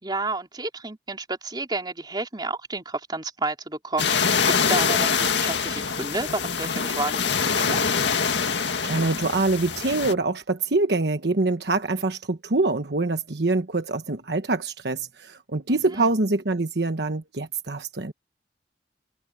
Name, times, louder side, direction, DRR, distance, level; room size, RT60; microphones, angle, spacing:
voice 1, 0.0-7.9 15.7-16.1, right 2 dB, 25° right, 3.6 m, -31 dB
sound 1, 4.0-10.1, left 6 dB, 80° left, 2.0 m, -24 dB
voice 2, 8.4-18.1, right 3 dB, 65° right, 1.2 m, -25 dB
head